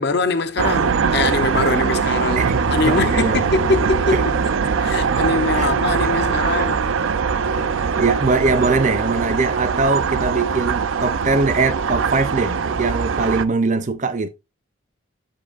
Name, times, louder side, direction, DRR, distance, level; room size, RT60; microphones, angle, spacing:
voice 1, 0.0-4.2 4.8-6.9 7.6-7.8, left 3 dB, 55° left, 0.7 m, -23 dB
sound 1, 0.6-13.4, right 5 dB, 75° right, 0.5 m, -21 dB
voice 2, 2.4-3.4 4.1-4.2 5.6-5.7 8.0-14.3, right 3 dB, 35° right, 0.6 m, -21 dB
7.2 x 5.4 x 2.5 m
head